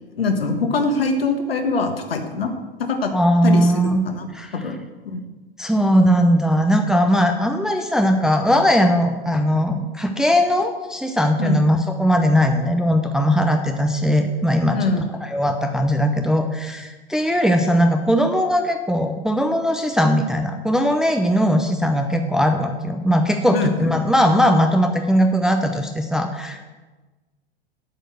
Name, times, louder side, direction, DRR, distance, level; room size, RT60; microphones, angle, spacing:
voice 1, 0.2-2.5 2.8-3.1 3.4-3.7 4.0-4.3 4.5-4.8 5.0-5.2 11.4-11.6 14.7-15.0 23.5-23.9, left 3 dB, 70° left, 5 dB, 1.5 m, -23 dB
voice 2, 3.1-4.6 5.6-14.8 15.2-26.8, equal, ahead, 5 dB, 0.5 m, -19 dB
8.3 x 6.5 x 7.7 m, 1.2 s
figure-of-eight pair, 95°, 31 cm